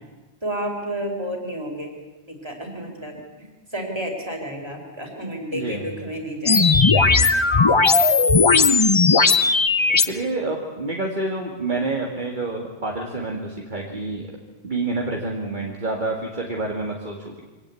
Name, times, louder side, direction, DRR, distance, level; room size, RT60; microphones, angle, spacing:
voice 1, 0.4-1.9 2.3-8.0 9.9-10.0, right 1 dB, 25° right, 2 dB, 4.5 m, -32 dB
voice 2, 5.5-5.9 9.9-14.3 14.6-17.4, right 2 dB, 45° right, 0 dB, 2.4 m, -28 dB
sound 1, 6.5-10.1, left 4 dB, 30° left, 0.8 m, -16 dB
24.0 x 18.0 x 8.4 m, 1.2 s
omnidirectional pair, 1.1 m